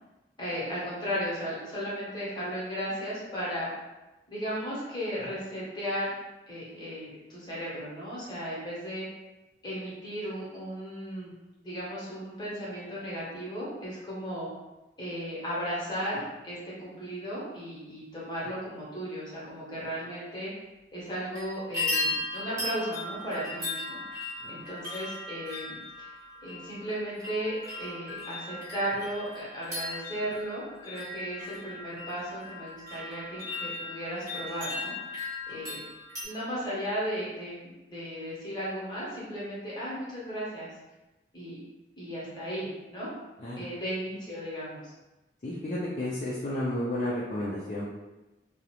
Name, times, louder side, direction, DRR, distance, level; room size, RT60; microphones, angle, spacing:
voice 1, 0.4-3.7 4.3-6.1 6.5-9.1 9.6-11.3 11.6-14.5 15.0-20.5 20.9-24.0 24.5-26.1 26.4-35.0 35.5-35.8 36.2-40.7 41.3-41.6 42.0-43.1 43.6-44.9, equal, 25° left, -7 dB, 0.8 m, -35 dB
sound 1, 21.1-21.4 21.7-36.2, left 2 dB, 20° right, 0.8 m, -37 dB
voice 2, 45.4-47.9, left 1 dB, 40° left, -7 dB, 0.4 m, -32 dB
2.4 x 2.0 x 2.9 m, 1.0 s
head